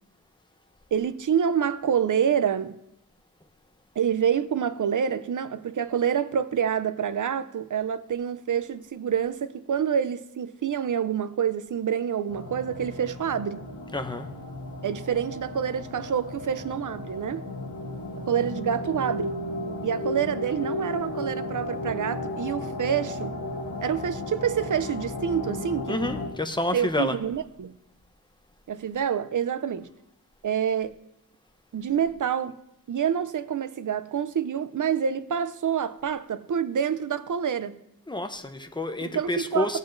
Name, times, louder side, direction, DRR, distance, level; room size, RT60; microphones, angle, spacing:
voice 1, 0.9-2.8 4.0-13.7 14.8-17.4 18.2-19.4 19.8-23.3 23.8-26.0 26.7-27.7 28.7-29.9 30.4-30.9 31.7-32.6 32.9-37.8 39.0-39.8, right 8 dB, 60° right, 0.5 m, -27 dB
sound 1, 12.3-26.3, left 1 dB, 85° left, 1.2 m, -34 dB
voice 2, 13.9-14.3 25.9-27.2 38.1-39.8, left 2 dB, 15° left, 0.7 m, -29 dB
16.0 x 8.0 x 2.6 m
wide cardioid pair, 95°, 36 cm